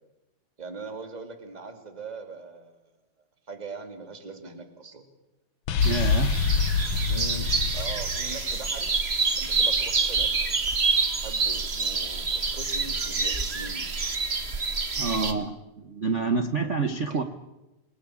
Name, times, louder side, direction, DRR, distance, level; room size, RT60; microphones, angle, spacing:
voice 1, 0.6-2.8 3.5-5.0 7.0-8.9 9.3-10.3 11.2-13.9 17.1-17.2, right 3 dB, 15° right, 7 dB, 2.5 m, -41 dB
sound 1, 5.7-9.4, left 6 dB, 60° left, 1.4 m, -26 dB
sound 2, 5.8-15.3, right 4 dB, 30° right, 1.3 m, -27 dB
voice 2, 5.8-6.3 14.9-17.2, right 4 dB, 85° right, 8 dB, 0.6 m, -27 dB
27.5 x 19.5 x 8.7 m, 0.99 s
omnidirectional pair, 3.3 m